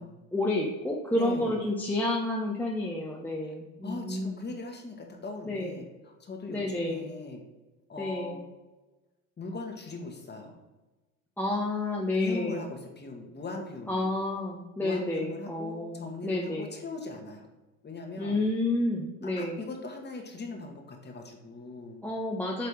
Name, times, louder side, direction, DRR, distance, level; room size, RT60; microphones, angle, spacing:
voice 1, 0.0-4.4 5.4-5.7 6.5-7.1 8.0-8.4 11.4-12.7 13.9-16.7 18.2-19.6 22.0-22.7, left 2 dB, 5° left, -2 dB, 0.9 m, -30 dB
voice 2, 1.1-1.6 3.8-5.8 6.2-7.4 7.9-8.4 9.4-10.6 12.2-14.1 14.8-17.5 17.8-18.4 19.2-22.0, left 3 dB, 20° left, 2 dB, 1.5 m, -39 dB
8.6 x 3.4 x 4.5 m, 1.1 s
hypercardioid pair, 85°, 45 cm